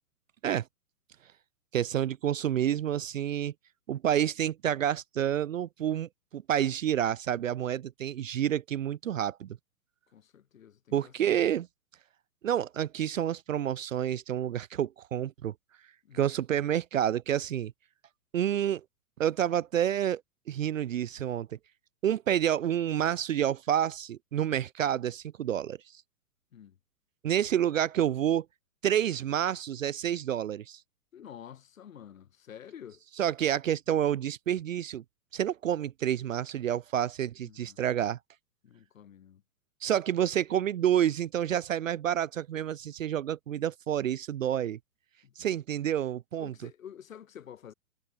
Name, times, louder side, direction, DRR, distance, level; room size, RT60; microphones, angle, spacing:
voice 1, 1.7-3.5 3.9-9.6 10.9-11.7 12.4-15.5 16.1-17.7 18.3-18.8 19.2-20.2 20.5-21.5 22.0-25.8 27.2-28.5 28.8-30.8 33.2-35.0 35.3-38.2 39.8-44.8 45.4-46.5, right 10 dB, 60° right, 0.5 m, -29 dB
voice 2, 10.1-11.5 16.0-16.3 26.5-26.8 31.1-33.0 37.4-37.8 38.6-39.4 45.2-45.5 46.4-47.7, left 9 dB, 55° left, 2.4 m, -49 dB
figure-of-eight pair, 120°, 47 cm